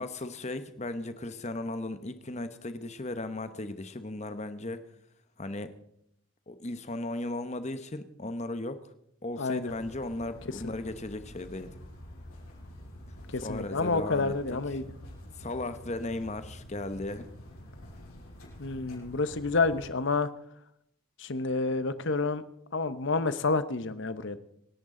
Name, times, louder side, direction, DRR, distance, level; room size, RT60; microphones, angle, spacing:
voice 1, 0.0-4.8 5.4-5.7 6.5-8.9 9.2-11.7 13.4-14.3 15.4-17.3, left 2 dB, 30° left, 10 dB, 1.0 m, -36 dB
voice 2, 9.4-9.7 13.3-14.9 18.6-20.3 21.2-22.4 22.7-24.4, left 3 dB, 55° left, 13 dB, 0.9 m, -29 dB
sound 1, 9.7-19.9, equal, 85° left, 7.3 m, -48 dB
26.5 x 10.5 x 3.8 m, 0.75 s
head